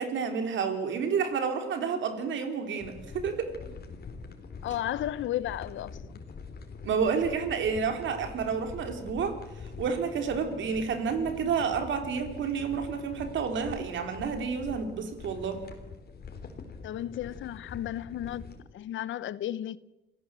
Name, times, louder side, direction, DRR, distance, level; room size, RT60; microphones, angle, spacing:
voice 1, 0.0-3.6 6.8-15.7, right 6 dB, 70° right, 3.9 m, -30 dB
sound 1, 2.8-18.6, left 4 dB, 50° left, 3.8 m, -44 dB
voice 2, 4.6-6.2 16.8-19.8, left 12 dB, 75° left, 0.9 m, -34 dB
27.5 x 17.0 x 7.7 m
cardioid pair, 90°, 20 cm